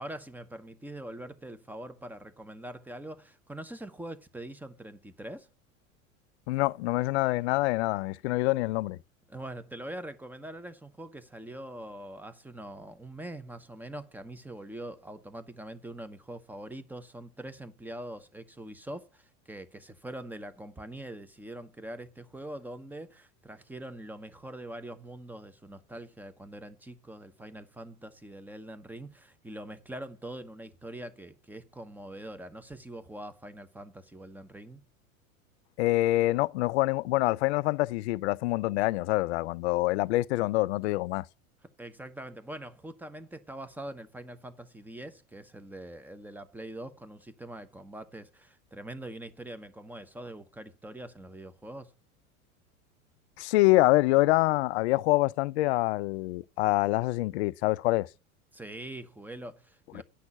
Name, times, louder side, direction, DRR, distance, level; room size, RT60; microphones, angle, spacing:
voice 1, 0.0-5.5 9.3-34.8 41.8-51.9 58.5-60.0, right 1 dB, 5° right, 0.9 m, -43 dB
voice 2, 6.5-9.0 35.8-41.3 53.4-58.1 59.9-60.0, left 19 dB, 50° left, 0.5 m, -26 dB
10.0 x 6.0 x 5.7 m
hypercardioid pair, 90°, 43 cm